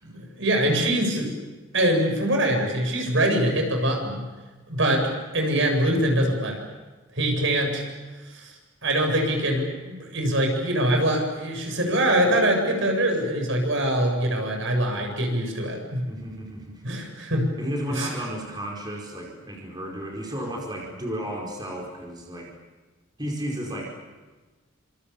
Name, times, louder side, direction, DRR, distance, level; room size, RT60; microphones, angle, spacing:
voice 1, 0.0-1.3 1.7-4.2 4.7-5.1 5.3-6.6 7.1-7.8 8.3-8.5 8.8-16.0 16.8-17.4 17.9-18.1, right 1 dB, 65° right, 2 dB, 7.7 m, -23 dB
voice 2, 16.1-16.8 17.6-22.5 23.2-23.9, equal, 20° right, -2 dB, 4.9 m, -33 dB
29.0 x 27.0 x 7.1 m, 1.2 s
head